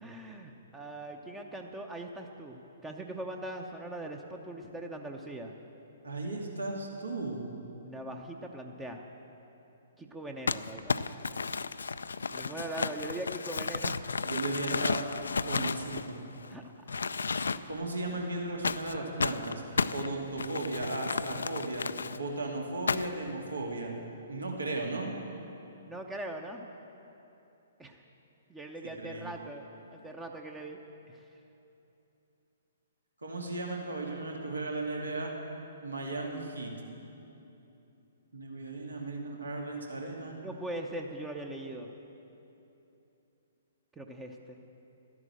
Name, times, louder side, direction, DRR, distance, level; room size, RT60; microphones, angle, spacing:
voice 1, 0.0-5.5 7.8-9.0 10.0-11.0 12.3-14.0 16.5-16.7 17.5-17.6 25.8-26.7 27.8-28.0 28.5-29.6 29.9-30.8 31.1-31.2 40.4-41.9 44.0-44.6, right 1 dB, 10° right, 3 dB, 0.8 m, -41 dB
voice 2, 6.0-7.4 14.2-15.0 15.4-16.3 17.7-19.6 19.9-21.9 22.1-23.9 24.3-25.1 29.0-29.3 33.2-35.3 35.8-36.7 38.3-40.4, right 2 dB, 75° right, 0 dB, 2.3 m, -36 dB
Crumpling crinkling, 10.5-16.5 16.9-17.9 18.6-22.2 22.9-23.3, left 4 dB, 65° left, 0.4 m, -33 dB
13.0 x 11.0 x 7.7 m, 2.9 s
figure-of-eight pair, 120°, 0 cm